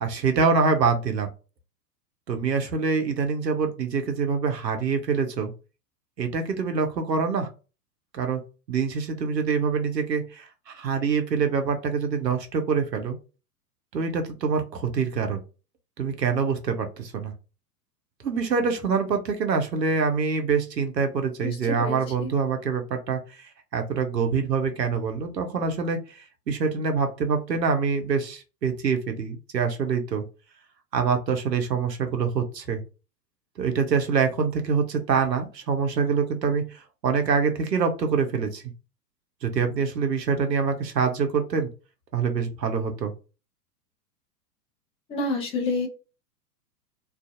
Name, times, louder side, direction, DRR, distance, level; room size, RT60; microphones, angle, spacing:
voice 1, 0.0-1.3 2.3-5.5 6.2-7.5 8.1-8.4 8.7-13.2 13.9-15.4 16.0-17.3 18.2-30.2 30.9-32.8 33.6-38.6 39.4-41.7 42.1-43.1, right 5 dB, 90° right, 6 dB, 0.7 m, -25 dB
voice 2, 21.4-22.3 45.1-45.9, left 3 dB, 15° left, 2 dB, 0.4 m, -29 dB
2.5 x 2.3 x 2.4 m, 0.32 s
figure-of-eight pair, 100°, 48 cm